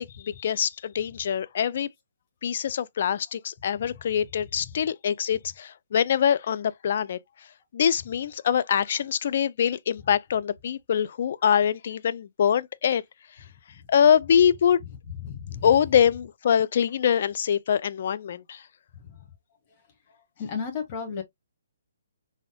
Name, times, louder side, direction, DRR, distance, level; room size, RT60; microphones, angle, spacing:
voice 1, 0.0-1.9 2.4-7.2 7.7-13.0 13.9-14.8 15.6-18.6, left 8 dB, 55° left, 0.5 m, -24 dB
voice 2, 15.2-15.7 19.1-19.2 20.4-21.2, left 6 dB, 35° left, 1.7 m, -33 dB
4.2 x 3.6 x 2.2 m
hypercardioid pair, 145°, 0 cm